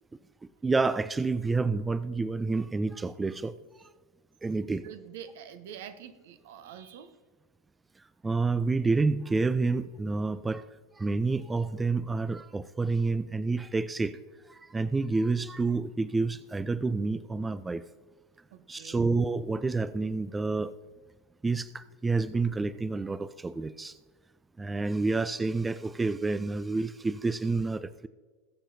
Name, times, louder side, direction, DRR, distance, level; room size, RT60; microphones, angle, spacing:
voice 1, 0.6-3.9 4.4-4.9 8.0-10.7 10.9-14.2 14.5-17.9 18.7-20.7 21.4-24.0 24.6-28.1, right 3 dB, 15° right, 15 dB, 0.4 m, -29 dB
voice 2, 4.7-7.2 18.5-19.1, right 9 dB, 65° right, 11 dB, 0.9 m, -46 dB
21.0 x 7.4 x 2.7 m, 1.4 s
figure-of-eight pair, 85°, 0 cm